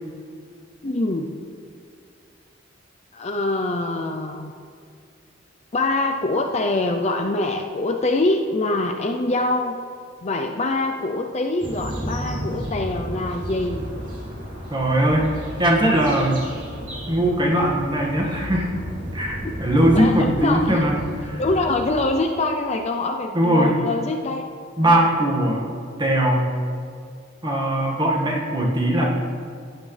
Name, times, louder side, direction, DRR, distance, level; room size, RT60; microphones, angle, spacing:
voice 1, 0.8-1.3 3.1-4.5 5.7-9.7 10.2-13.8 19.4-19.5 19.9-20.7 21.4-24.5, left 2 dB, 35° left, 4 dB, 0.5 m, -24 dB
sound 1, 11.6-22.0, equal, 40° right, 2.8 m, -33 dB
voice 2, 14.7-16.4 17.1-18.7 19.1-21.4 23.3-23.8 24.8-25.6 26.0-26.4 27.4-29.0, right 1 dB, 20° right, -2 dB, 1.7 m, -20 dB
15.5 x 8.8 x 3.3 m, 2.4 s
head